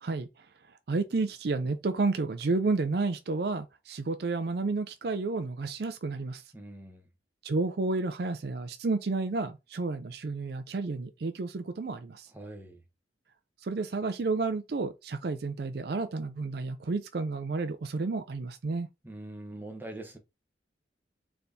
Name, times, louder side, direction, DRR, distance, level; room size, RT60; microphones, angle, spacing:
voice 1, 0.0-0.5 0.9-6.4 7.4-12.3 13.6-18.9, right 3 dB, 60° right, 0.4 m, -31 dB
voice 2, 6.5-7.0 12.3-12.8 19.0-20.2, right 1 dB, 10° right, 1.0 m, -43 dB
4.2 x 3.4 x 2.7 m
head